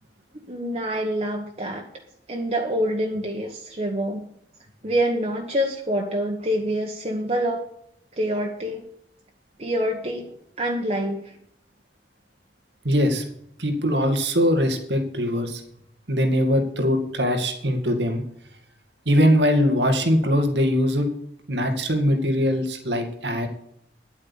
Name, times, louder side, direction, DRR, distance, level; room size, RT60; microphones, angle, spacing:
voice 1, 0.5-1.9 2.3-4.2 4.8-7.6 8.2-8.8 9.6-10.3 10.6-11.2, equal, 35° right, 0 dB, 1.4 m, -26 dB
voice 2, 12.8-13.2 13.6-15.6 16.1-18.2 19.1-21.1 21.5-23.5, equal, 85° right, 6 dB, 2.2 m, -21 dB
10.5 x 8.5 x 7.2 m, 0.71 s
head